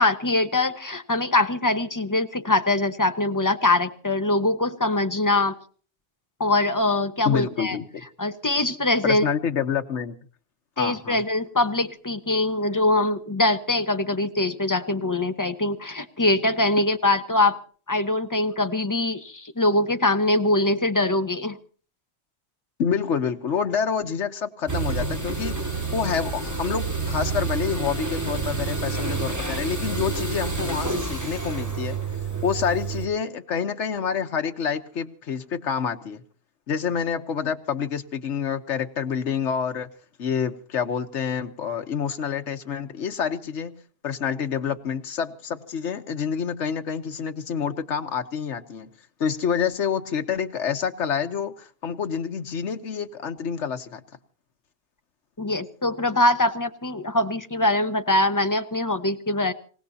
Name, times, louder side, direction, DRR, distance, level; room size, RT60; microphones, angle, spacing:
voice 1, 0.0-5.5 6.4-7.8 8.2-9.2 10.8-17.6 17.9-21.6 55.4-59.5, left 2 dB, 20° left, 8 dB, 1.0 m, -23 dB
voice 2, 7.2-7.8 9.0-10.2 10.8-11.2 22.8-25.7 25.9-32.0 32.4-36.2 36.7-39.9 40.2-43.7 44.0-48.9 49.2-54.0, left 7 dB, 85° left, 6 dB, 1.4 m, -27 dB
sound 1, 24.7-33.1, right 4 dB, 15° right, 2.1 m, -28 dB
26.5 x 17.0 x 2.8 m, 0.41 s
omnidirectional pair, 1.2 m